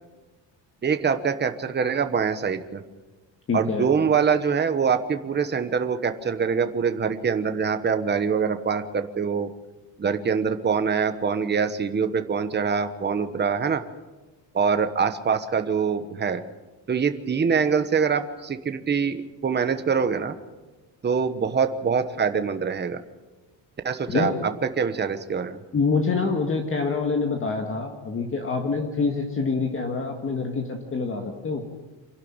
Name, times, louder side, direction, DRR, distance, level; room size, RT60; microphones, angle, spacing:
voice 1, 0.8-2.8 3.5-9.5 10.0-13.8 14.5-16.4 16.9-20.3 21.0-23.0 23.8-25.6, right 6 dB, 20° right, 8 dB, 1.1 m, -24 dB
voice 2, 3.5-3.9 24.1-24.4 25.7-31.6, left 4 dB, 25° left, 3 dB, 1.7 m, -26 dB
27.0 x 11.5 x 8.8 m, 1.2 s
cardioid pair, 175°, 47 cm